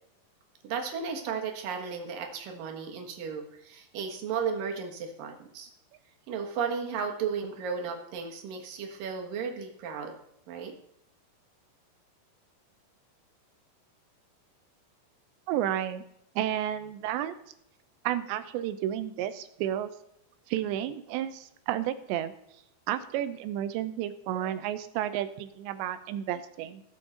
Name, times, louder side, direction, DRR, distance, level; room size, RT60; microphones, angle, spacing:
voice 1, 0.6-5.7 6.3-10.1 10.5-10.7, right 6 dB, 60° right, 2 dB, 2.8 m, -34 dB
voice 2, 15.5-16.0 16.4-17.3 18.0-19.9 20.5-22.3 22.9-26.8, right 11 dB, 90° right, 11 dB, 3.0 m, -31 dB
18.5 x 7.7 x 3.9 m, 0.76 s
omnidirectional pair, 5.0 m